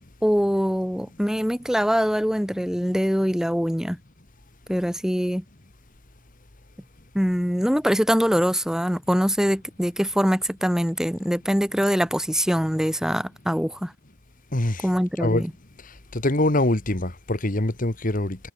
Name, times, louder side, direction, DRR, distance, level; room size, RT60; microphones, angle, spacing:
voice 1, 0.2-4.0 4.7-5.4 7.1-13.9 14.8-15.5, equal, 5° right, 3.1 m, -23 dB
voice 2, 14.5-14.9 15.2-15.4 16.1-18.4, left 1 dB, 40° left, 1.7 m, -23 dB
head